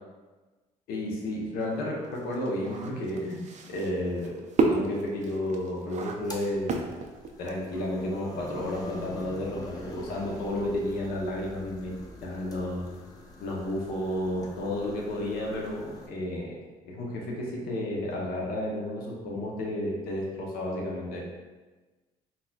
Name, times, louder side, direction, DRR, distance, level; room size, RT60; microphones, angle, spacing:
voice 1, 0.9-3.4 3.7-4.3 4.7-6.9 7.4-11.9 12.2-12.8 13.4-16.5 16.8-21.2, left 1 dB, 80° left, -2 dB, 0.9 m, -32 dB
sound 1, 1.6-7.8, right 3 dB, 50° right, 0.5 m, -31 dB
sound 2, 6.1-16.1, left 2 dB, 25° left, 0.6 m, -45 dB
4.0 x 2.8 x 2.3 m, 1.2 s
supercardioid pair, 80°, 15 cm